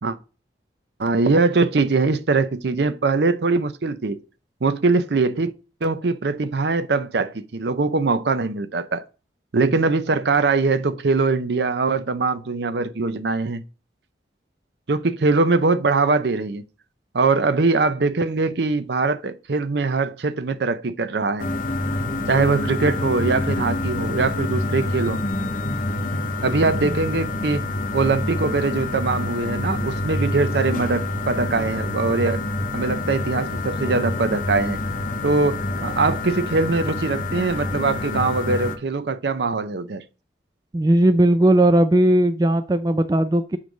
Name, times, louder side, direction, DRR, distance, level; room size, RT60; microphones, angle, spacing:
voice 1, 1.0-4.2 4.6-5.5 5.8-9.0 9.5-13.6 14.9-16.6 17.1-21.5 22.3-25.2 26.4-27.7 27.9-32.4 32.7-34.8 35.2-40.0, right 3 dB, 65° right, 0.6 m, -22 dB
sound 1, 21.4-38.8, left 2 dB, 45° left, 0.8 m, -27 dB
voice 2, 40.7-43.6, right 1 dB, 20° right, 0.3 m, -17 dB
7.3 x 3.1 x 4.9 m
head